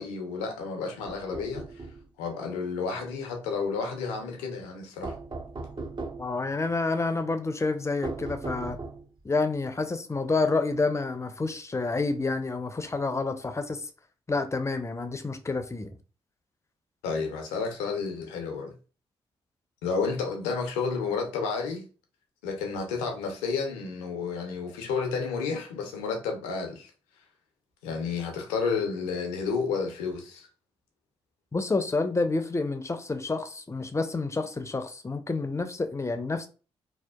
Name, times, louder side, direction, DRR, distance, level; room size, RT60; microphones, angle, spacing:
voice 1, 0.0-1.6 2.2-5.2 17.0-18.8 19.8-21.8 22.4-26.9 27.8-30.5, left 5 dB, 90° left, 0.5 m, -31 dB
sound 1, 1.0-2.0 5.0-6.4 8.0-9.2, right 3 dB, 35° right, 0.5 m, -37 dB
voice 2, 6.2-8.8 9.2-13.9 14.3-15.9 31.5-36.5, left 3 dB, 20° left, 0.4 m, -29 dB
2.7 x 2.1 x 2.2 m
hypercardioid pair, 40°, 13 cm